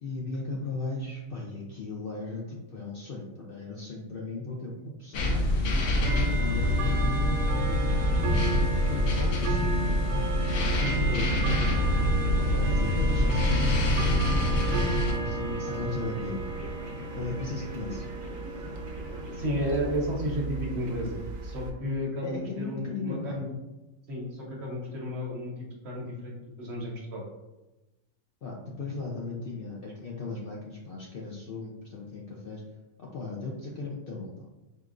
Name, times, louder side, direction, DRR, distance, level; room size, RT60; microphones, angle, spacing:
voice 1, 0.0-5.4 5.9-8.0 8.9-9.8 10.8-11.5 12.4-14.9 15.2-16.4 17.1-18.1 22.2-23.4 28.4-32.6 33.0-34.3, left 3 dB, 60° left, -3 dB, 0.6 m, -36 dB
sound 1, 5.1-15.1, left 1 dB, 85° left, 1.0 m, -25 dB
Bell / Tick-tock, 5.3-21.7, right 3 dB, 85° right, 1.0 m, -34 dB
sound 2, 7.8-19.4, equal, 25° right, 0.9 m, -45 dB
voice 2, 19.3-23.5 24.1-27.2, equal, 55° right, -2 dB, 1.0 m, -33 dB
4.5 x 2.5 x 2.4 m, 1.0 s
omnidirectional pair, 1.4 m